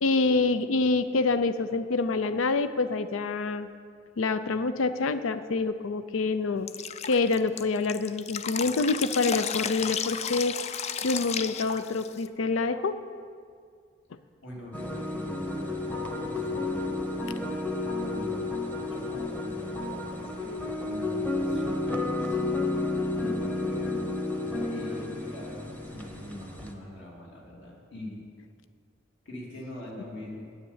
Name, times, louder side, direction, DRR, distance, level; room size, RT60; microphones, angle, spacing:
voice 1, 0.0-3.7 4.2-6.7 7.1-10.5 11.0-12.9, left 3 dB, 90° left, 12 dB, 0.5 m, -26 dB
Drip, 6.7-12.3, left 8 dB, 35° left, 0.3 m, -33 dB
voice 2, 14.4-17.3 17.9-28.2 29.2-30.5, left 1 dB, 65° left, -3 dB, 2.8 m, -43 dB
sound 1, 14.7-26.7, left 2 dB, 10° left, 0.9 m, -31 dB
9.5 x 8.7 x 7.2 m, 2.1 s
head